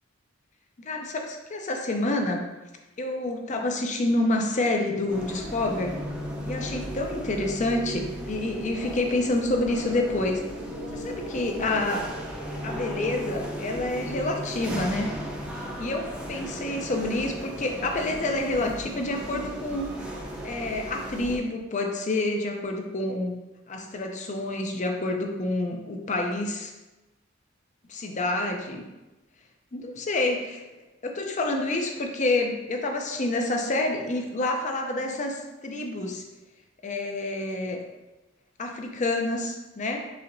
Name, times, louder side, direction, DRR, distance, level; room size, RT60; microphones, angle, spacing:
voice 1, 0.8-2.4 3.0-5.9 6.5-10.4 10.9-12.1 12.6-15.2 15.5-19.9 20.4-23.3 23.7-26.7 27.9-28.9 29.7-30.6 31.0-36.2 36.8-37.8 38.6-40.1, left 2 dB, 35° left, 3 dB, 0.6 m, -28 dB
sound 1, 5.1-21.4, equal, 5° right, 0.6 m, -36 dB
6.2 x 2.9 x 2.6 m, 1.1 s
head